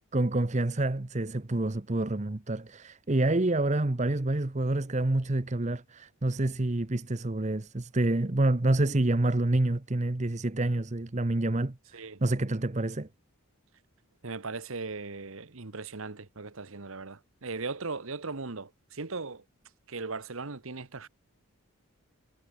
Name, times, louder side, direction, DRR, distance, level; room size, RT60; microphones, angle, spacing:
voice 1, 0.1-13.1, right 2 dB, 30° right, 0.9 m, -28 dB
voice 2, 14.2-19.4 19.9-21.1, right 3 dB, 70° right, 1.2 m, -38 dB
head